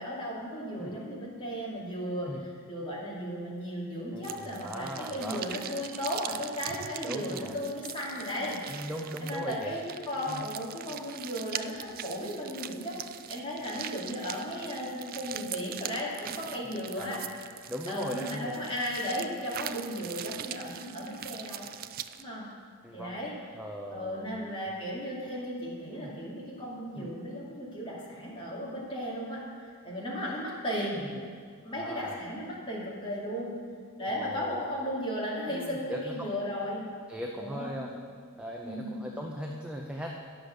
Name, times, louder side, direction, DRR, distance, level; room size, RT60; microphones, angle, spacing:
voice 1, 0.0-2.3 2.7-8.6 9.2-17.2 17.9-21.7 22.2-22.5 22.9-23.3 23.9-31.0 31.6-33.6 34.0-36.8 37.4-37.7 38.6-39.0, equal, 25° left, -5 dB, 2.4 m, -35 dB
voice 2, 4.1-5.5 7.0-7.6 8.7-9.8 10.3-10.4 16.7-17.3 17.7-18.7 22.8-23.2 23.5-24.5 25.9-26.1 26.9-27.1 30.9-31.2 31.8-32.2 34.1-34.6 35.5-36.3 37.1-37.9 38.4-40.1, equal, 5° right, -1 dB, 0.6 m, -39 dB
sound 1, 4.2-22.2, right 11 dB, 45° right, 0.3 m, -42 dB
10.0 x 6.8 x 6.5 m, 2.1 s
head